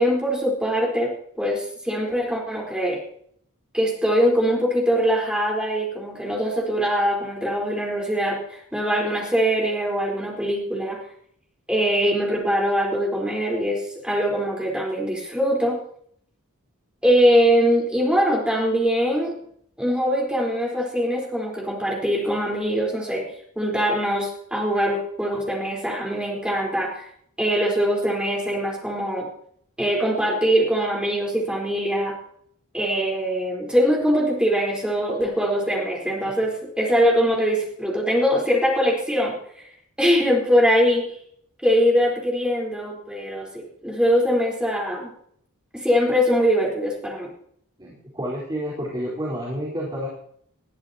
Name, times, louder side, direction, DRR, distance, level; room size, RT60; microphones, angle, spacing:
voice 1, 0.0-3.0 3.7-11.0 11.7-15.8 17.0-19.4 19.8-23.3 23.6-27.0 27.4-29.3 29.8-32.2 32.7-39.4 40.0-41.2 41.6-45.1 45.7-47.3, equal, 5° right, -2 dB, 4.3 m, -22 dB
voice 2, 47.8-50.1, equal, 20° right, -5 dB, 4.5 m, -30 dB
21.0 x 14.0 x 2.9 m, 0.65 s
head